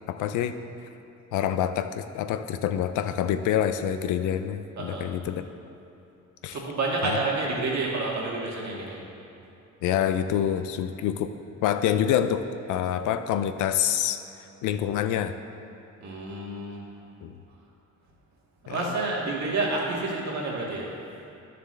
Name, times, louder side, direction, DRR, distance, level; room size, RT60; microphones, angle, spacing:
voice 1, 0.1-0.6 1.3-5.4 6.4-6.6 7.0-7.2 9.8-11.3 11.6-14.2 14.6-15.3 17.2-17.3 18.7-18.9, left 10 dB, 90° left, 9 dB, 0.5 m, -26 dB
voice 2, 4.8-5.1 6.5-9.0 16.0-16.8 18.6-20.9, right 3 dB, 65° right, -4 dB, 1.9 m, -29 dB
11.0 x 6.7 x 3.2 m, 2.9 s
cardioid pair, 90°, 30 cm